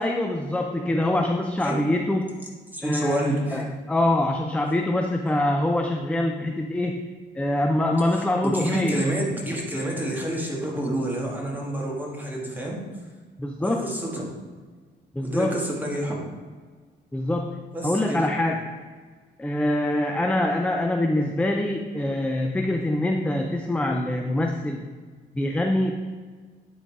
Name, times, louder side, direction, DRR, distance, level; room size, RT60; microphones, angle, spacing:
voice 1, 0.0-2.3 2.8-7.1 7.4-9.0 13.4-13.9 15.1-15.5 17.1-18.7 19.4-24.9 25.3-25.9, left 1 dB, 5° left, 4 dB, 0.5 m, -24 dB
voice 2, 2.7-3.6 8.1-12.8 13.6-14.3 15.2-16.2 17.7-18.3, right 1 dB, 10° right, -2 dB, 1.9 m, -28 dB
9.8 x 3.9 x 4.8 m, 1.5 s
cardioid pair, 90°, 20 cm